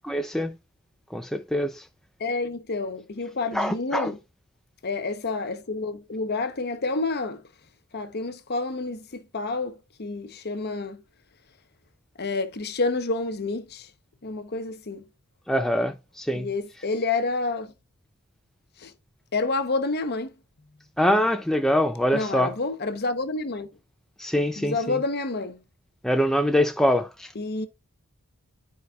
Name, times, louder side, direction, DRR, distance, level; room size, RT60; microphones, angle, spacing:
voice 1, 0.0-0.6 1.1-1.8 3.5-4.1 15.5-16.5 21.0-22.5 24.2-25.0 26.0-27.3, equal, ahead, 0.4 m, -24 dB
voice 2, 2.2-4.2 4.8-7.4 7.9-11.0 12.2-13.9 14.2-15.0 16.3-17.7 18.8-18.9 19.3-20.3 22.1-23.7 24.6-25.6 27.3-27.7, left 3 dB, 45° left, 0.9 m, -29 dB
12.5 x 4.7 x 2.3 m
head